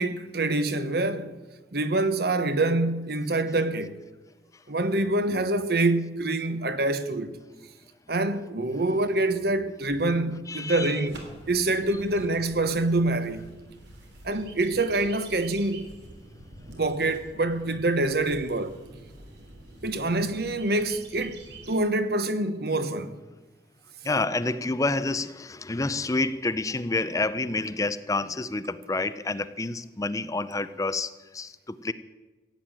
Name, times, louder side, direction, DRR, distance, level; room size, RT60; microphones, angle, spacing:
voice 1, 0.0-1.4 1.7-4.0 4.7-7.4 8.1-13.4 14.2-15.9 16.7-18.8 19.8-23.2, right 2 dB, 60° right, 1.1 m, -26 dB
voice 2, 10.5-11.0 24.0-31.9, left 3 dB, 20° left, 0.5 m, -28 dB
sound 1, 11.0-21.7, right 2 dB, 85° right, 3.5 m, -47 dB
15.5 x 9.2 x 9.0 m
head